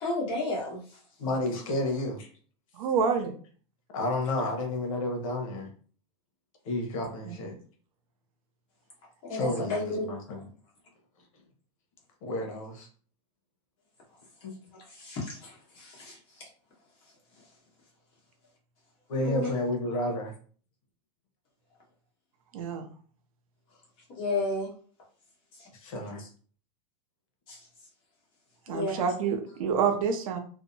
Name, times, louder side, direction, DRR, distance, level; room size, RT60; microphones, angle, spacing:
voice 1, 0.0-0.8 9.3-10.1 15.0-15.5 15.8-16.2 19.2-19.5 24.2-24.7 27.5-27.6 28.7-29.0, left 2 dB, 30° left, -4 dB, 1.1 m, -31 dB
voice 2, 1.2-2.3 3.9-5.7 6.6-7.6 9.3-10.5 12.2-12.9 14.4-14.5 19.1-20.3 25.8-26.3, left 2 dB, 70° left, 2 dB, 0.9 m, -31 dB
voice 3, 2.7-3.3 7.3-7.4 9.3-9.6 22.5-22.9 28.7-30.4, right 6 dB, 75° right, 5 dB, 0.6 m, -28 dB
2.7 x 2.1 x 2.6 m, 0.43 s
supercardioid pair, 165°, 18 cm